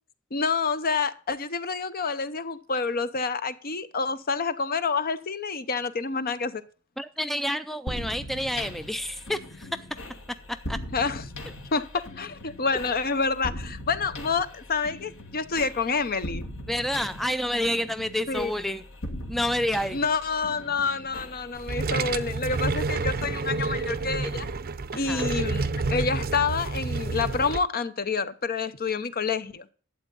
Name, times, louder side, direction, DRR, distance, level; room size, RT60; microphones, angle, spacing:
voice 1, 0.3-6.6 10.9-11.2 11.7-16.4 18.3-18.5 19.9-24.5 24.9-29.7, left 4 dB, 45° left, 0.7 m, -28 dB
voice 2, 7.0-9.8 10.5-10.8 16.7-18.8 19.3-20.0 24.9-25.3, equal, ahead, 0.4 m, -29 dB
sound 1, 7.9-23.5, left 1 dB, 65° left, 2.0 m, -40 dB
sound 2, 21.5-27.6, right 3 dB, 45° right, 0.6 m, -29 dB
12.0 x 8.3 x 3.9 m
head